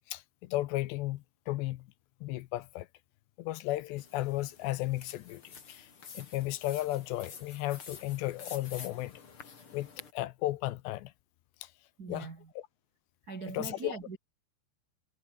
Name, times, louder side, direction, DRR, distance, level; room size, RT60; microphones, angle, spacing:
voice 1, 0.1-1.9 2.2-2.9 3.4-9.2 9.7-11.1 11.6-11.7 12.1-12.3 12.6-12.7 13.5-13.9, left 17 dB, 75° left, 2.8 m, -35 dB
sound 1, 4.0-10.1, left 6 dB, 35° left, 3.0 m, -49 dB
voice 2, 12.0-12.5 13.3-14.2, right 4 dB, 90° right, 0.8 m, -41 dB
omnidirectional pair, 5.5 m